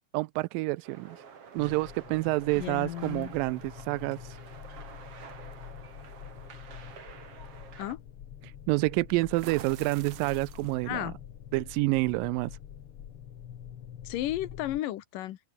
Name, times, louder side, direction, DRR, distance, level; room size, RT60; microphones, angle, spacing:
voice 1, 0.1-1.2 1.5-4.4 8.7-11.1 11.5-12.5, right 22 dB, 90° right, 2.3 m, -28 dB
sound 1, 0.8-8.0, right 6 dB, 45° right, 3.4 m, -49 dB
sound 2, 1.6-14.8, left 9 dB, 55° left, 1.9 m, -46 dB
voice 2, 2.6-3.3 7.8-8.0 10.8-11.2 14.0-15.4, left 14 dB, 80° left, 2.8 m, -33 dB
sound 3, 2.6-3.3 4.6-4.8 5.3-5.5 9.3-11.0, right 12 dB, 65° right, 1.6 m, -47 dB
open air
omnidirectional pair, 3.9 m